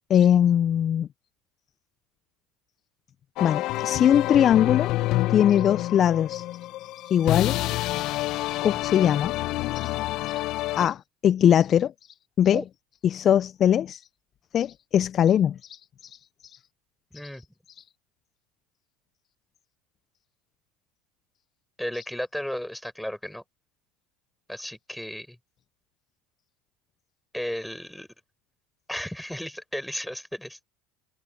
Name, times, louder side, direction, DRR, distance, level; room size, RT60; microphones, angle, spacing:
voice 1, 0.1-1.1 3.4-4.9 5.3-6.4 7.1-7.6 8.6-9.3 9.7-9.9 10.8-11.9 12.4-12.6 13.0-14.0 14.5-15.8, left 9 dB, 45° left, 0.7 m, -21 dB
sound 1, 3.4-10.9, left 17 dB, 60° left, 1.3 m, -28 dB
voice 2, 21.8-23.4 24.5-25.4 27.3-28.1 28.9-30.6, equal, ahead, 4.8 m, -34 dB
hypercardioid pair, 85°, 0 cm